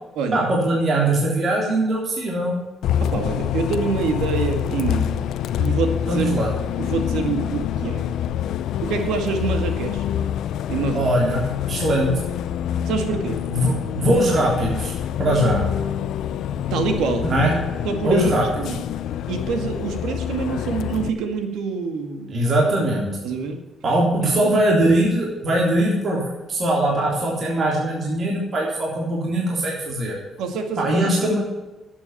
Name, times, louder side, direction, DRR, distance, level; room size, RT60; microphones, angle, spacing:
voice 1, 0.3-2.6 6.1-6.5 10.9-12.1 13.5-14.9 15.2-15.6 17.2-17.5 18.0-18.4 22.3-23.1 23.8-30.2 30.8-31.4, right 1 dB, 50° right, -2 dB, 3.6 m, -21 dB
Bus, 2.8-21.1, left 9 dB, 80° left, 0.6 m, -26 dB
voice 2, 3.0-5.2 5.6-6.4 6.8-8.1 8.8-10.1 10.7-11.1 12.8-13.4 16.7-17.3 17.8-18.8 19.3-22.7 23.2-23.6 24.2-24.6 30.4-31.1, right 4 dB, 90° right, 6 dB, 2.2 m, -26 dB
11.5 x 8.8 x 7.4 m, 1.1 s
cardioid pair, 90°, 0 cm